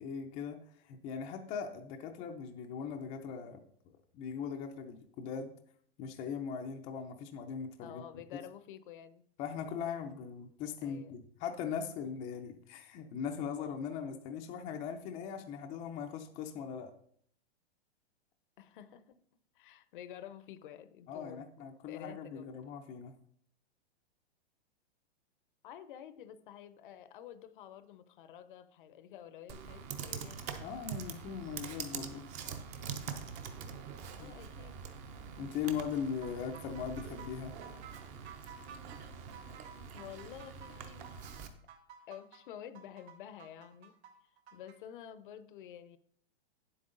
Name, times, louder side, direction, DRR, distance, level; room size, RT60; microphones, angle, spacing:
voice 1, 0.0-3.6 4.1-5.5 6.0-8.0 9.4-16.9 21.1-23.1 30.6-32.2 34.2-34.3 35.4-37.5, left 7 dB, 20° left, 0.5 m, -40 dB
voice 2, 7.8-9.2 10.8-11.2 18.6-19.2 19.5-21.5 21.9-22.5 25.6-30.4 34.1-34.8 39.9-41.1 42.1-44.0 44.2-46.0, left 10 dB, 50° left, 0.7 m, -50 dB
Computer keyboard, 29.5-41.5, right 6 dB, 20° right, 0.6 m, -44 dB
sound 1, 36.2-44.8, right 7 dB, 70° right, 1.7 m, -54 dB
9.2 x 7.9 x 3.8 m
hypercardioid pair, 155°, 33 cm